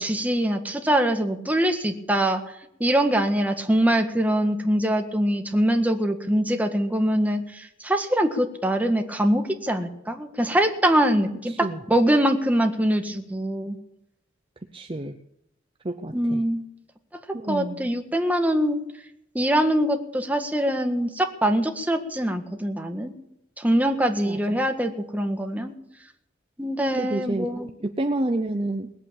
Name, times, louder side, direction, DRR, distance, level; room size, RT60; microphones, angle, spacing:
voice 1, 0.0-2.4 2.8-13.8 16.1-16.6 17.5-18.8 19.3-23.1 23.6-25.7 26.6-27.7, right 1 dB, 10° right, 4 dB, 1.6 m, -23 dB
voice 2, 11.5-11.8 14.7-15.2 15.8-16.4 17.3-17.9 24.2-24.6 27.0-27.5 27.8-28.9, right 2 dB, 25° right, 6 dB, 0.7 m, -29 dB
20.0 x 8.3 x 8.6 m, 0.78 s
head